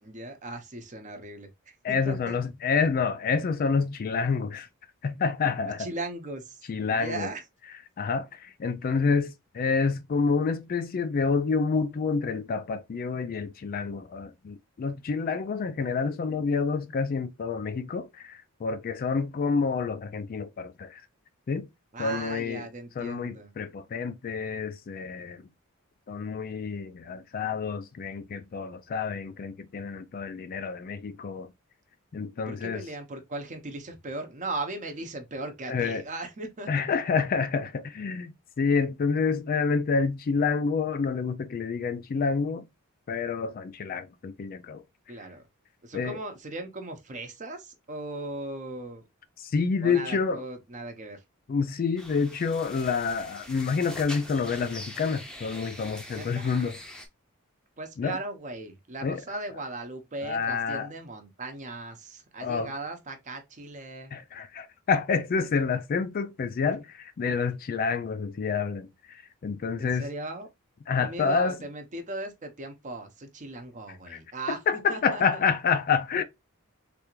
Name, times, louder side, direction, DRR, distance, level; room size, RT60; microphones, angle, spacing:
voice 1, 0.0-2.4 5.8-6.6 6.9-7.4 21.9-23.5 32.4-36.7 45.1-45.4 45.8-49.0 49.8-51.2 56.1-56.6 57.8-64.1 69.8-70.5 71.0-74.6 74.9-75.2, right 2 dB, 35° right, 0.7 m, -38 dB
voice 2, 1.8-4.7 5.0-5.9 6.7-7.3 8.0-21.0 21.5-21.7 22.0-22.7 23.0-25.4 26.1-31.5 32.1-32.8 35.7-36.0 36.7-42.7 43.1-44.8 45.9-46.2 49.4-50.4 51.5-56.8 58.0-58.2 59.0-59.2 60.2-60.9 62.4-62.7 64.1-70.1 70.9-71.6 74.1-74.2 74.5-76.2, left 5 dB, 45° left, 0.3 m, -28 dB
sound 1, 52.0-57.1, left 1 dB, 5° left, 0.6 m, -43 dB
3.3 x 2.4 x 3.0 m
head